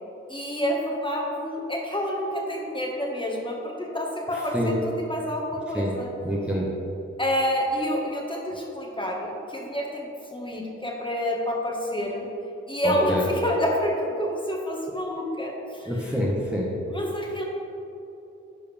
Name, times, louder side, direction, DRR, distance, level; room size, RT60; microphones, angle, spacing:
voice 1, 0.3-6.1 7.2-12.3 12.7-16.1 16.9-17.4, equal, 15° left, -2 dB, 1.9 m, -28 dB
voice 2, 4.3-4.7 5.7-5.9 6.2-6.7 12.8-13.3 15.8-16.7, equal, 5° right, -5 dB, 1.5 m, -26 dB
12.0 x 4.8 x 3.6 m, 2.9 s
supercardioid pair, 40°, 31 cm